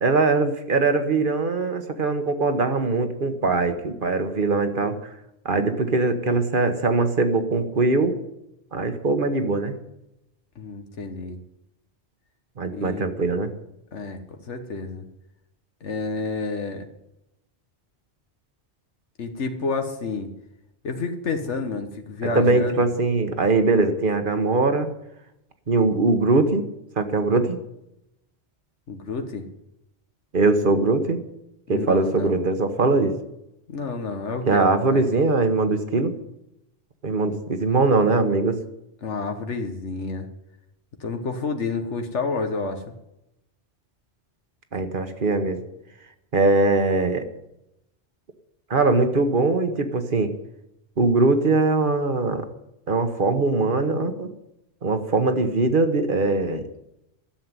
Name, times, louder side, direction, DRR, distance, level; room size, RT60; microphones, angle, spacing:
voice 1, 0.0-4.9 5.4-8.1 8.7-9.7 12.6-13.5 22.2-24.9 25.7-26.6 27.0-27.6 30.3-31.2 31.7-33.1 34.5-36.1 37.0-38.6 44.7-45.6 46.3-47.2 48.7-50.3 51.0-52.4 52.9-54.3 54.8-56.6, right 3 dB, 50° right, 8 dB, 1.4 m, -21 dB
voice 2, 10.5-11.4 12.7-13.1 13.9-14.2 14.5-15.0 15.8-16.8 19.2-20.3 20.8-22.9 28.9-29.4 31.7-32.4 33.7-35.3 39.0-40.3 41.0-42.8, left 4 dB, 85° left, 5 dB, 1.6 m, -29 dB
13.0 x 7.6 x 9.6 m, 0.86 s
omnidirectional pair, 1.2 m